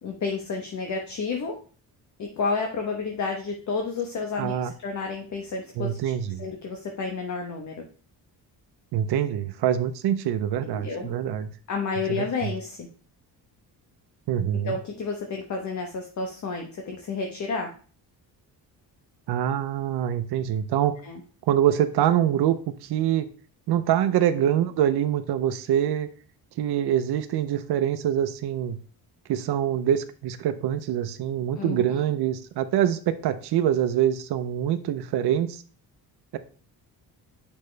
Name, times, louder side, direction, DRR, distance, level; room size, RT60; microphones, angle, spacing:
voice 1, 0.0-1.5 2.2-6.0 6.4-7.8 10.6-11.1 11.7-12.9 14.6-17.7 21.0-21.2 31.6-32.0, left 4 dB, 45° left, 2 dB, 1.1 m, -31 dB
voice 2, 4.4-4.7 5.8-6.5 8.9-11.5 12.1-12.5 14.3-14.7 19.3-20.9 21.5-23.2 23.7-26.1 26.6-28.8 29.3-35.6 36.3-36.4, right 10 dB, 90° right, 9 dB, 0.7 m, -25 dB
8.7 x 5.2 x 3.3 m, 0.40 s
cardioid pair, 155°, 38 cm